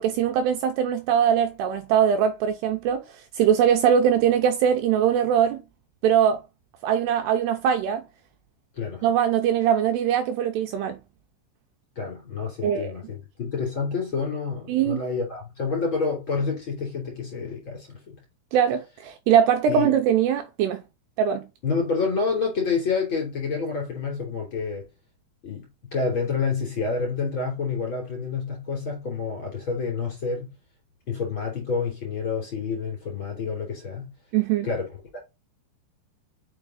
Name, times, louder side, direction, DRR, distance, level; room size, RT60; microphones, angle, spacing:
voice 1, 0.0-5.6 6.0-6.4 6.8-8.0 9.0-11.0 12.6-12.9 14.7-15.0 18.5-20.8 21.2-21.5 34.3-34.7, right 8 dB, 90° right, 2.4 m, -22 dB
voice 2, 11.9-18.2 19.7-19.9 21.6-24.9 25.4-30.5 31.1-34.0 34.6-35.2, left 5 dB, 30° left, 3.0 m, -28 dB
6.2 x 4.9 x 3.7 m
omnidirectional pair, 5.5 m